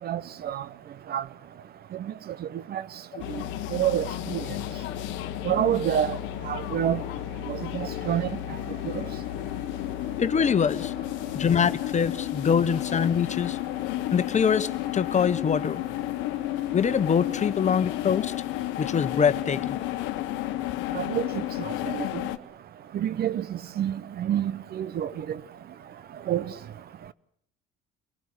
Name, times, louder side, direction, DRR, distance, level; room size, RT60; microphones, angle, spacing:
voice 1, 0.0-0.6 1.1-1.2 2.0-2.1 2.4-2.8 3.3-3.4 3.7-4.5 5.4-6.2 6.4-7.0 7.5-8.3 8.9-9.0 20.9-22.2 22.9-25.4 26.3-26.5, right 10 dB, 50° right, 0.9 m, -28 dB
sound 1, 3.2-22.4, left 14 dB, 70° left, 1.1 m, -32 dB
voice 2, 10.2-10.9 11.3-13.6 14.1-15.8 16.7-18.4 18.8-19.8, left 7 dB, 35° left, 1.3 m, -24 dB
24.5 x 18.5 x 8.0 m
hypercardioid pair, 70°, 20 cm